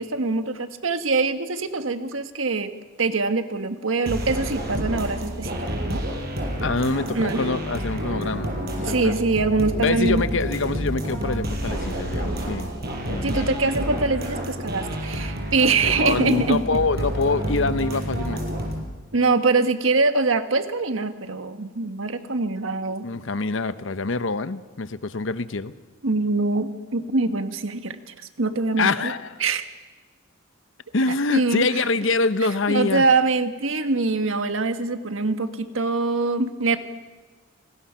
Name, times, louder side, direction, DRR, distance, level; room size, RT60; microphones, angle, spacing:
voice 1, 0.0-2.7 3.0-6.0 6.9-7.4 8.8-10.2 13.2-16.6 19.1-23.0 26.0-29.1 29.4-29.7 31.3-31.8 32.7-36.8, right 3 dB, 80° right, 9 dB, 1.5 m, -23 dB
sound 1, 4.1-18.8, equal, 55° right, 5.0 m, -29 dB
voice 2, 6.6-8.5 8.8-9.1 9.8-12.7 13.1-13.6 15.8-18.4 23.0-25.7 28.8-29.3 30.9-33.0, left 3 dB, 65° left, 13 dB, 0.9 m, -25 dB
28.5 x 19.5 x 5.8 m, 1.3 s
head